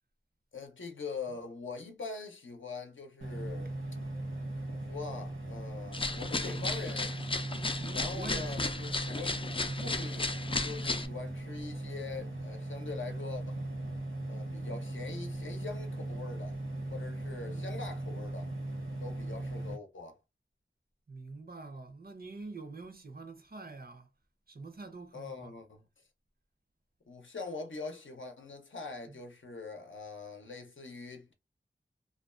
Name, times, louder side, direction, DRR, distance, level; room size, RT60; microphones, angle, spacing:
voice 1, 0.5-3.7 4.7-7.2 7.9-9.5 9.8-13.6 14.3-16.6 16.9-18.5 19.0-20.2 25.1-25.8 27.1-31.3, left 4 dB, 70° left, 0.6 m, -43 dB
sound 1, 3.2-19.8, right 1 dB, 75° right, 0.8 m, -38 dB
sound 2, 5.9-11.1, left 3 dB, 25° left, 0.3 m, -35 dB
voice 2, 7.7-8.9 9.6-10.0 17.3-17.9 21.1-24.1 24.5-25.6 29.1-29.2, right 3 dB, 50° right, 0.6 m, -46 dB
2.4 x 2.2 x 2.4 m
wide cardioid pair, 50°, 20 cm